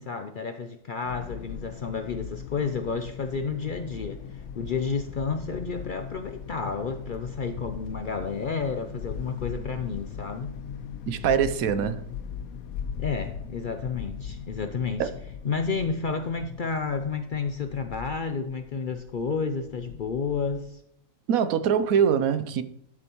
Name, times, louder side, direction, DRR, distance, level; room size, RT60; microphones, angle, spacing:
voice 1, 0.0-10.5 13.0-15.1 15.4-20.8, left 5 dB, 55° left, 0.6 m, -31 dB
sound 1, 1.0-20.7, left 7 dB, 85° left, 1.1 m, -39 dB
voice 2, 11.1-12.1 15.0-15.1 21.3-22.6, right 8 dB, 85° right, 1.1 m, -23 dB
12.0 x 6.7 x 3.0 m
omnidirectional pair, 1.5 m